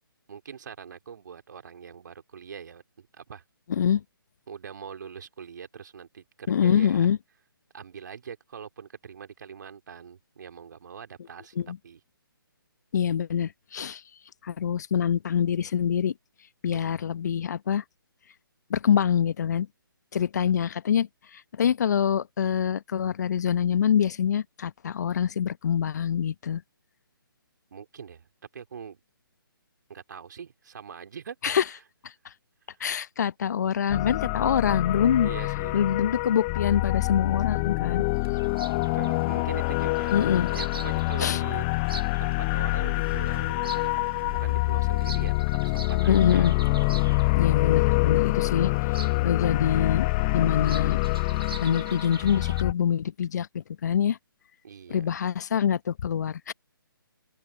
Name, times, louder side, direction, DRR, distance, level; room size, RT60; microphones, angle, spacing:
voice 1, 0.3-3.4 4.5-7.1 7.7-12.0 16.7-16.8 20.4-20.5 27.7-28.3 28.5-29.0 29.9-31.8 32.7-32.8 35.2-35.7 38.7-43.8 44.3-45.3 45.6-46.5 54.6-55.1, right 7 dB, 55° right, 3.4 m, -43 dB
voice 2, 3.7-4.0 6.5-7.2 11.6-11.8 12.9-14.0 14.4-16.1 16.6-17.8 18.7-19.7 20.1-21.1 21.3-26.6 31.4-31.6 32.0-32.1 32.8-35.3 35.7-38.0 40.1-40.5 41.2-41.4 46.1-46.5 47.4-48.7 49.2-51.0 51.6-54.2 54.9-56.5, left 8 dB, 50° left, 1.1 m, -25 dB
sound 1, 33.9-52.7, left 25 dB, 25° left, 0.8 m, -26 dB
Bird vocalization bird call bird song, 37.9-52.6, right 3 dB, 80° right, 2.0 m, -44 dB
open air
figure-of-eight pair, 140°, 12 cm